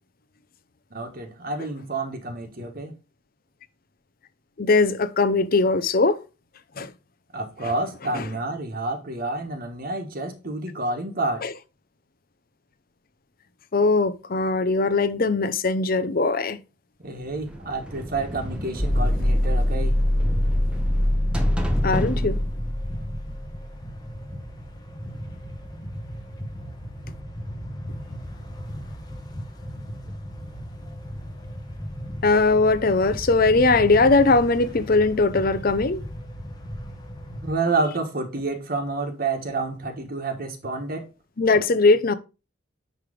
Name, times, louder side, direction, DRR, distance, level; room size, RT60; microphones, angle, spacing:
voice 1, 0.9-2.9 7.3-11.4 17.0-20.0 37.4-41.1, right 3 dB, 45° right, 1.4 m, -29 dB
voice 2, 4.6-6.2 6.8-6.9 8.1-8.2 11.4-11.5 13.7-16.6 21.8-22.4 32.2-36.0 41.4-42.1, left 3 dB, 45° left, 0.6 m, -20 dB
sound 1, 17.2-24.0, equal, 5° right, 0.8 m, -32 dB
sound 2, 18.3-37.5, equal, 20° left, 1.1 m, -37 dB
sound 3, 18.8-23.8, left 1 dB, 65° left, 3.2 m, -24 dB
9.6 x 3.3 x 5.0 m
head